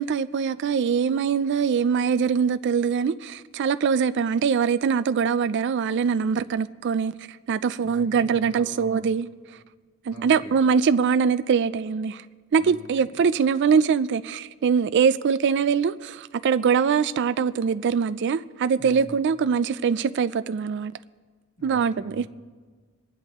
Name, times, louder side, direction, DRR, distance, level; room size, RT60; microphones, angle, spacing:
voice 1, 0.0-7.1 7.5-9.3 10.1-12.2 12.5-20.9 21.6-22.3, right 6 dB, 55° right, 0.3 m, -23 dB
voice 2, 7.8-9.1 10.1-10.6 12.6-13.2 18.8-19.2 21.6-22.3, equal, 70° left, 2.4 m, -43 dB
28.5 x 10.5 x 3.0 m
head